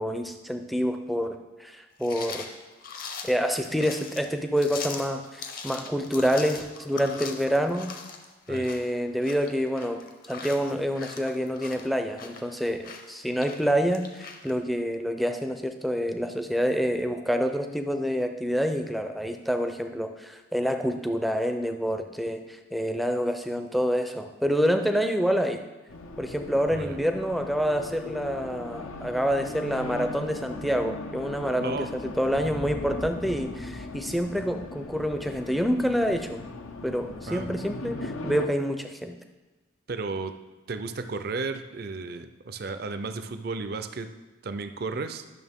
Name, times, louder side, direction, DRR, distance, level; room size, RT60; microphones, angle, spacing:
voice 1, 0.0-2.5 3.2-7.9 8.5-10.0 10.3-25.6 26.2-36.4 36.8-39.1, equal, ahead, 6 dB, 0.5 m, -27 dB
sound 1, 2.0-14.5, left 5 dB, 45° left, 0.8 m, -41 dB
Race car auto racing, 25.9-38.5, left 2 dB, 85° left, 0.7 m, -39 dB
sound 2, 32.2-36.8, left 1 dB, 65° left, 1.6 m, -43 dB
voice 2, 39.9-40.3 40.7-44.1 44.4-45.2, right 3 dB, 50° right, 9 dB, 0.5 m, -33 dB
11.0 x 6.5 x 3.6 m, 1.2 s
head